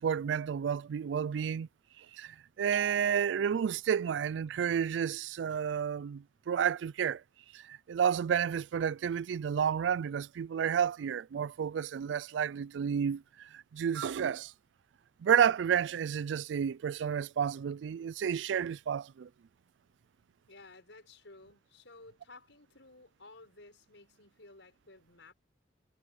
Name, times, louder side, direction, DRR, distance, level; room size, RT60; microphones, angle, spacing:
voice 1, 0.0-1.7 2.0-7.2 7.5-14.5 15.2-19.3, right 8 dB, 85° right, 0.3 m, -31 dB
voice 2, 20.5-25.3, left 2 dB, 90° left, 6.2 m, -55 dB
head